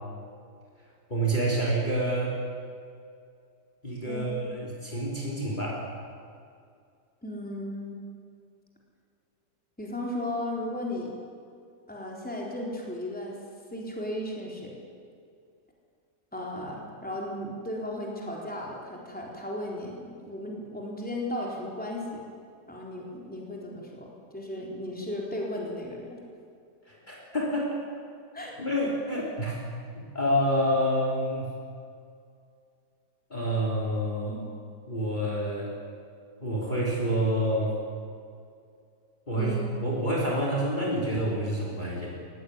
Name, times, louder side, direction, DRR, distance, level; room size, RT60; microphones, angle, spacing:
voice 1, 1.1-2.3 3.8-5.8 26.8-27.8 28.6-29.6 29.9-31.5 33.3-34.4 34.9-35.8 36.4-37.7 39.3-42.1, right 1 dB, 25° left, -3 dB, 3.5 m, -28 dB
voice 2, 4.1-4.6 7.2-8.0 9.8-11.1 11.9-13.3 13.7-14.8 16.3-22.3 22.7-24.1 24.3-26.2 28.3-28.5 34.3-34.4 39.4-39.6, left 1 dB, 5° left, -2 dB, 3.9 m, -35 dB
19.0 x 16.0 x 9.8 m, 2.3 s
omnidirectional pair, 1.9 m